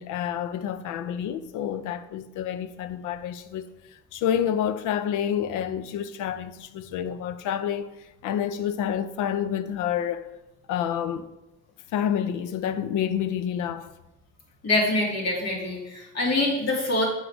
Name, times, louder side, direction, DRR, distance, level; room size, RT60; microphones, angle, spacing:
voice 1, 0.0-3.7 4.1-7.9 8.2-10.3 10.7-11.3 11.9-13.9, left 9 dB, 85° left, 0.5 m, -28 dB
voice 2, 14.6-17.0, left 2 dB, 60° left, 2.2 m, -25 dB
6.4 x 3.9 x 4.5 m
cardioid pair, 90°, 30 cm